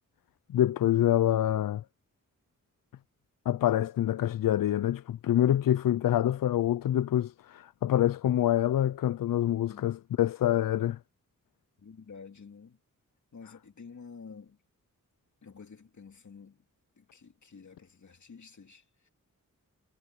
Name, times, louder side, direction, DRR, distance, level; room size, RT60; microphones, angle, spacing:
voice 1, 0.5-1.8 3.5-11.0, left 12 dB, 85° left, 0.5 m, -26 dB
voice 2, 11.8-12.8 13.3-14.6 15.4-16.7 17.0-19.1, left 5 dB, 60° left, 2.7 m, -50 dB
wide cardioid pair, 110°, 33 cm